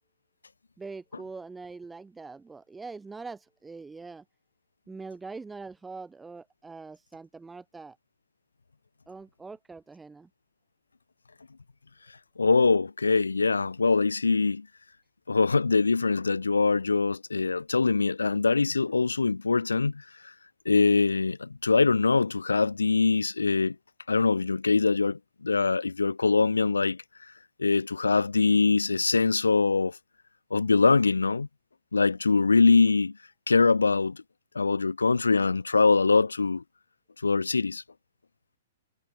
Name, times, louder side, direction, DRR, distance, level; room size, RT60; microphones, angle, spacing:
voice 1, 0.8-4.2 4.9-8.0 9.1-10.3, right 4 dB, 10° right, 3.0 m, -43 dB
voice 2, 12.4-14.7 15.3-20.3 20.7-23.8 24.1-27.0 27.6-30.0 30.5-31.5 31.9-33.1 33.5-34.2 34.5-36.6 37.2-37.8, left 4 dB, 85° left, 0.4 m, -23 dB
figure-of-eight pair, 115°, 0 cm